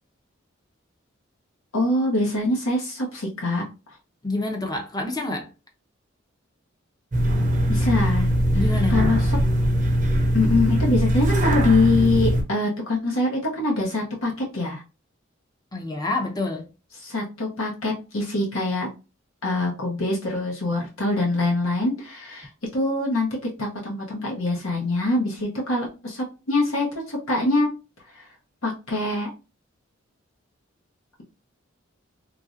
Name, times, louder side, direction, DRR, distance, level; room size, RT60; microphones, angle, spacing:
voice 1, 1.7-3.6 7.7-8.6 8.9-9.2 10.3-14.8 17.0-18.9 19.4-23.3 23.6-27.7 28.2-28.3 28.6-29.3, left 2 dB, 85° left, 0.9 m, -24 dB
voice 2, 4.2-5.5 8.5-9.2 15.7-16.7, left 2 dB, 20° left, 0.5 m, -28 dB
sound 1, 7.1-12.4, equal, 40° right, 0.5 m, -21 dB
3.1 x 2.5 x 2.5 m
head